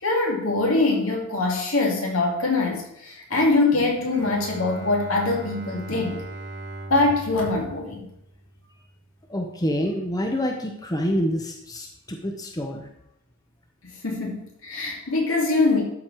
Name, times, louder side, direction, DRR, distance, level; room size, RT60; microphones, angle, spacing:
voice 1, 0.0-6.2 6.9-8.1 14.0-15.8, left 2 dB, 75° left, 0 dB, 2.4 m, -23 dB
Bowed string instrument, 4.1-9.8, right 2 dB, 55° right, 1.6 m, -40 dB
voice 2, 9.3-12.9, equal, 20° left, 2 dB, 0.8 m, -27 dB
12.0 x 4.6 x 4.8 m, 0.79 s
head